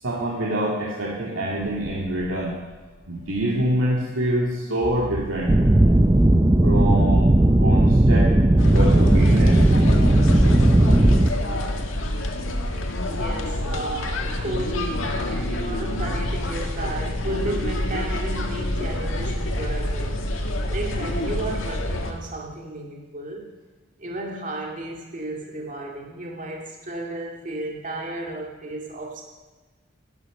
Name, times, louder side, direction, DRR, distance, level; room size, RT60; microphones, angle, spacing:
voice 1, 0.0-2.6 3.1-5.6 6.6-7.3 7.6-9.6, right 1 dB, 85° right, -5 dB, 2.5 m, -26 dB
sound 1, 1.6-4.2 4.8-9.5 10.1-11.3, equal, 45° left, 2.0 m, -40 dB
sound 2, 5.5-11.3, right 1 dB, 15° right, 0.5 m, -16 dB
sound 3, 8.6-22.1, left 1 dB, 80° left, 1.8 m, -27 dB
voice 2, 13.0-20.2 20.7-23.4 24.0-29.3, right 1 dB, 40° right, -1 dB, 2.1 m, -33 dB
13.5 x 11.0 x 6.6 m, 1.3 s
head